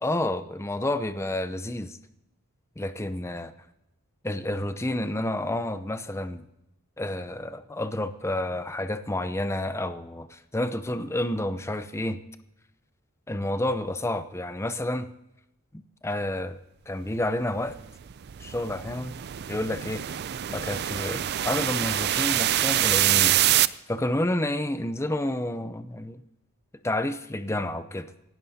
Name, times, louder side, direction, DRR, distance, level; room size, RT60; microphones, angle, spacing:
voice 1, 0.0-2.0 2.8-3.5 4.2-6.4 7.0-12.2 13.3-15.1 15.7-16.6 16.9-17.8 18.4-19.1 19.5-20.0 20.5-23.4 23.9-26.2 26.8-28.1, left 1 dB, 10° left, 11 dB, 0.6 m, -30 dB
sound 1, 17.7-23.7, right 13 dB, 50° right, 0.4 m, -25 dB
26.0 x 12.0 x 2.8 m, 0.87 s
head